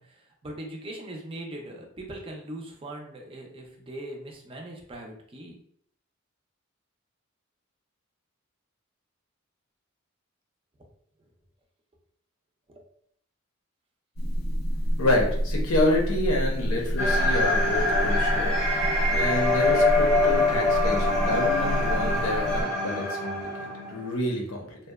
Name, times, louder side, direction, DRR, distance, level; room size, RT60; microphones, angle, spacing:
voice 1, 0.0-5.6 12.7-12.8, right 1 dB, 25° right, 1 dB, 0.4 m, -40 dB
sound 1, 14.2-22.6, equal, 45° left, 0.4 m, -28 dB
voice 2, 15.0-18.5 19.1-24.8, left 1 dB, 90° left, 0 dB, 0.7 m, -28 dB
sound 2, 17.0-24.1, left 2 dB, ahead, 0.7 m, -25 dB
2.7 x 2.1 x 2.2 m, 0.65 s
head